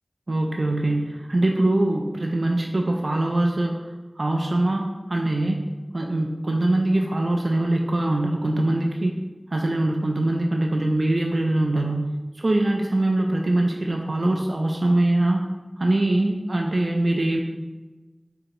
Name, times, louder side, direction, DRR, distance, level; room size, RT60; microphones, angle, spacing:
voice 1, 0.3-3.8 4.2-5.6 5.9-9.1 9.5-12.1 12.3-15.5 15.8-17.4, right 1 dB, 70° right, 1 dB, 0.3 m, -23 dB
4.6 x 2.8 x 2.5 m, 1.2 s
wide cardioid pair, 40°, 0 cm